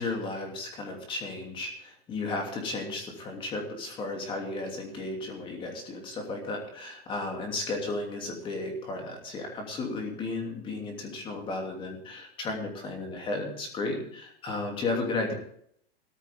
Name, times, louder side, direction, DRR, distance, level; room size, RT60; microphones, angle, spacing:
voice 1, 0.0-15.3, left 2 dB, 15° left, 2 dB, 2.9 m, -34 dB
16.5 x 14.0 x 3.6 m, 0.67 s
supercardioid pair, 175°, 31 cm